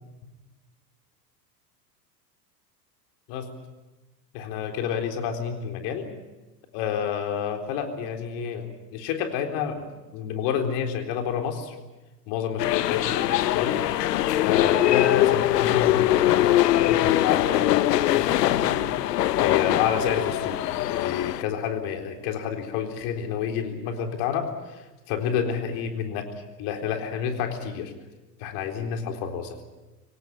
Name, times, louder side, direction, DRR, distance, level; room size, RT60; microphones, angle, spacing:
voice 1, 4.3-6.1 6.7-11.8 12.3-13.9 14.4-18.8 19.4-26.3 26.6-27.9 28.4-29.6, left 8 dB, 55° left, 5 dB, 4.0 m, -29 dB
sound 1, 12.6-21.4, left 14 dB, 75° left, 1.0 m, -22 dB
25.0 x 17.5 x 9.8 m, 1.1 s
hypercardioid pair, 95°, 49 cm